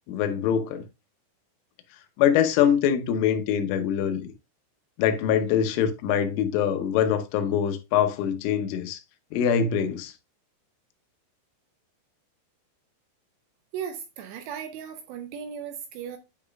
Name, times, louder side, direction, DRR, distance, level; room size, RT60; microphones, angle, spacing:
voice 1, 0.1-0.8 2.2-4.3 5.0-9.0 9.3-10.1, left 8 dB, 90° left, 3.4 m, -24 dB
voice 2, 13.7-16.2, right 8 dB, 80° right, 2.6 m, -36 dB
9.5 x 5.0 x 2.3 m
omnidirectional pair, 5.5 m